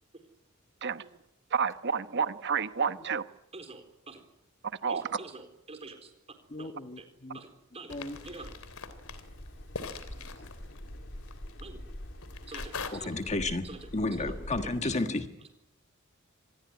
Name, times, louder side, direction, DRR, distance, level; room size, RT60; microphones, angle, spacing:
voice 1, 1.5-3.2 4.8-5.2, right 6 dB, 55° right, 12 dB, 1.1 m, -30 dB
voice 2, 3.5-4.2 4.9-6.1 6.6-7.0 7.3-8.0 8.2-8.5 11.6-11.8 12.5-13.1 13.6-13.8 14.2-14.3, right 3 dB, 30° right, 7 dB, 4.1 m, -46 dB
voice 3, 6.5-7.4 7.9-8.2 12.9-15.3, left 2 dB, 35° left, 7 dB, 1.5 m, -33 dB
sound 1, 7.9-12.9, left 4 dB, 85° left, 3.2 m, -43 dB
sound 2, 8.1-14.8, equal, 60° left, 3.6 m, -45 dB
26.0 x 20.5 x 9.7 m, 0.87 s
head